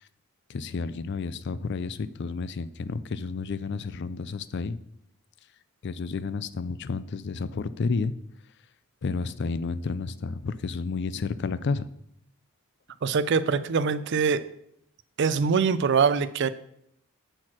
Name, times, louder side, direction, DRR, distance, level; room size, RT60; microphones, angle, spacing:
voice 1, 0.5-4.8 5.8-8.1 9.0-11.8, left 4 dB, 55° left, 16 dB, 0.4 m, -31 dB
voice 2, 13.0-14.5 15.2-16.5, right 5 dB, 55° right, 15 dB, 0.4 m, -23 dB
7.8 x 4.4 x 6.0 m, 0.74 s
head